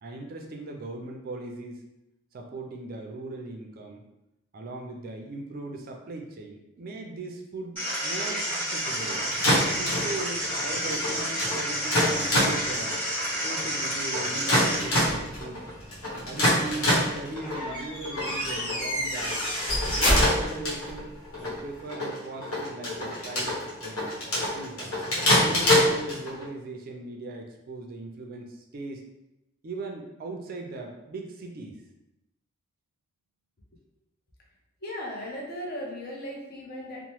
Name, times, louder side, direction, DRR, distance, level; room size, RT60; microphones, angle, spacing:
voice 1, 0.0-1.8 2.3-4.0 4.5-9.2 9.7-13.0 13.4-15.7 16.2-19.4 19.9-21.1 21.4-25.0 25.4-29.1 29.6-31.8, right 2 dB, 45° right, 2 dB, 0.4 m, -39 dB
sound 1, 7.8-14.8, equal, 10° left, 1.1 m, -30 dB
sound 2, 9.0-26.4, left 1 dB, 90° left, 1.0 m, -27 dB
sound 3, 14.7-15.6 17.4-21.0, equal, 25° left, 1.2 m, -28 dB
voice 2, 34.8-37.1, equal, 45° left, -1 dB, 0.6 m, -37 dB
2.9 x 2.0 x 3.0 m, 0.91 s
head